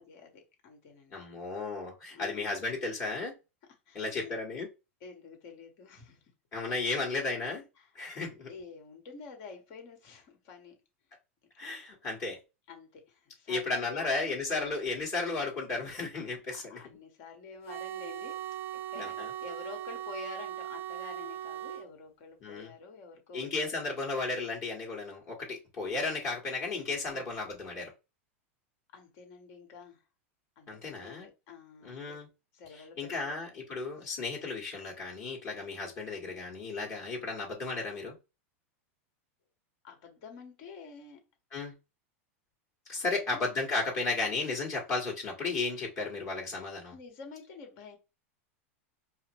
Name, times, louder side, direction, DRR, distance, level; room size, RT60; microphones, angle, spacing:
voice 1, 0.0-1.2 2.1-2.5 3.9-4.3 5.0-6.2 7.8-7.9 8.5-10.8 11.6-11.7 12.7-14.1 16.5-18.4 18.9-23.5 27.1-27.2 28.9-30.0 30.6-32.2 32.5-33.4 39.8-41.3 43.0-43.4 46.9-48.0, left 5 dB, 55° left, 1.7 m, -48 dB
voice 2, 1.1-3.4 3.9-4.7 6.5-7.6 8.0-8.5 11.6-12.4 13.5-16.8 19.0-19.3 22.4-22.7 23.3-27.9 30.7-31.3 31.8-32.3 32.7-38.1 41.5-41.7 42.9-46.9, left 3 dB, 40° left, 1.7 m, -34 dB
sound 1, 17.7-21.9, right 11 dB, 75° right, 0.7 m, -39 dB
4.8 x 2.0 x 3.1 m
hypercardioid pair, 110°, 7 cm